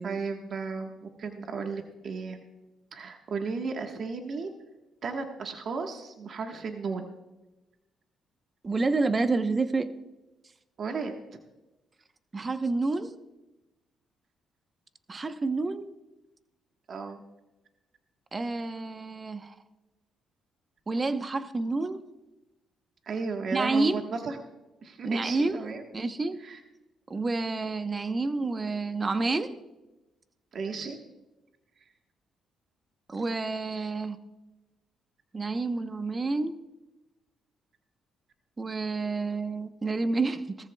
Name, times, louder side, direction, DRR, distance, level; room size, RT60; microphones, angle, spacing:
voice 1, 0.0-2.4 2.9-4.5 5.0-7.2 10.8-11.1 16.9-17.2 23.0-24.4 24.8-25.8 26.4-26.6 30.5-31.0 33.7-33.9, right 4 dB, 55° right, 4 dB, 1.3 m, -34 dB
voice 2, 8.6-9.9 12.3-13.1 15.1-15.9 18.3-19.5 20.9-22.0 23.5-24.0 25.0-25.7 25.9-26.4 27.1-29.6 33.1-34.2 35.3-36.5 38.6-40.6, right 3 dB, 30° right, 10 dB, 0.9 m, -29 dB
18.5 x 14.0 x 2.3 m, 1.1 s
cardioid pair, 90°, 0 cm